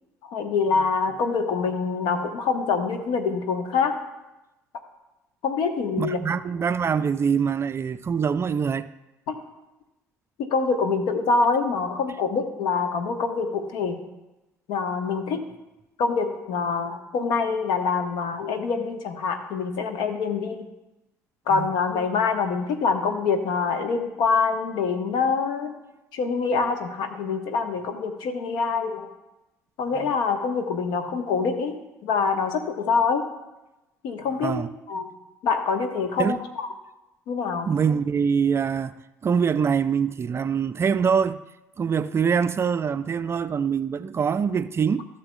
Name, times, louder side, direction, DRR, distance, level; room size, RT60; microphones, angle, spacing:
voice 1, 0.3-3.9 5.4-6.2 9.3-9.4 10.5-14.0 14.7-15.4 16.0-20.6 21.5-25.8 26.1-29.1 29.8-33.2 34.0-34.6 34.9-35.1 35.4-36.7 37.3-37.7, left 5 dB, 65° left, 1.2 m, -25 dB
voice 2, 6.0-8.9 21.5-21.7 30.0-30.1 34.4-34.7 36.2-36.4 37.6-39.0 39.2-41.4 41.8-45.1, right 6 dB, 30° right, 0.4 m, -24 dB
15.5 x 6.8 x 2.3 m
figure-of-eight pair, 55°, 8 cm